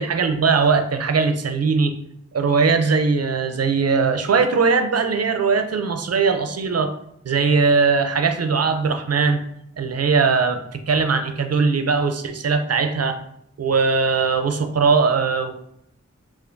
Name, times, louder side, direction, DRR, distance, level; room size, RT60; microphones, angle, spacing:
voice 1, 0.0-2.0 2.3-6.9 7.2-9.4 9.8-13.2 13.6-15.5, right 4 dB, 60° right, 7 dB, 0.5 m, -20 dB
4.3 x 2.4 x 2.5 m, 0.73 s
wide cardioid pair, 40°, 29 cm